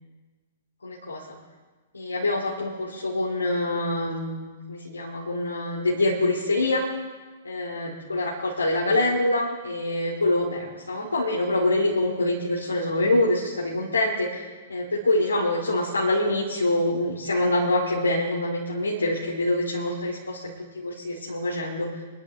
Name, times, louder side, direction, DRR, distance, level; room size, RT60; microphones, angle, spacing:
voice 1, 0.8-1.2 1.9-6.9 7.4-22.0, left 1 dB, 85° left, -4 dB, 2.4 m, -25 dB
24.5 x 12.5 x 3.4 m, 1.3 s
figure-of-eight pair, 110°, 0 cm